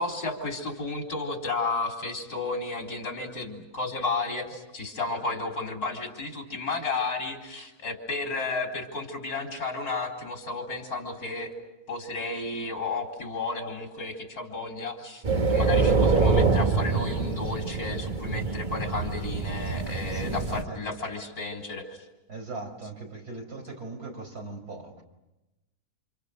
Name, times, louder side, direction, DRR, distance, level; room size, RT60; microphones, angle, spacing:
voice 1, 0.0-11.5 11.9-15.2 15.5-22.0, left 3 dB, 75° left, 1 dB, 4.3 m, -33 dB
sound 1, 15.2-20.6, right 4 dB, 30° right, 1.5 m, -25 dB
voice 2, 20.1-21.0 22.3-25.0, right 3 dB, 75° right, 3 dB, 5.5 m, -39 dB
29.0 x 28.5 x 6.7 m, 0.97 s
omnidirectional pair, 1.6 m